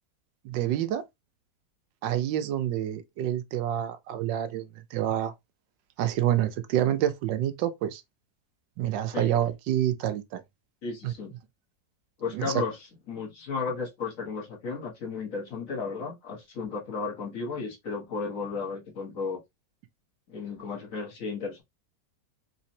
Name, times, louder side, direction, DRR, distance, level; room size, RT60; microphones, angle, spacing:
voice 1, 0.4-1.0 2.0-4.7 4.9-5.3 6.0-8.0 8.8-10.4 11.0-11.1 12.3-12.6, right 11 dB, 85° right, 1.3 m, -27 dB
voice 2, 10.8-11.3 12.2-12.8 13.1-19.4 20.3-21.6, left 4 dB, 50° left, 1.5 m, -34 dB
4.1 x 2.9 x 2.7 m
omnidirectional pair, 1.9 m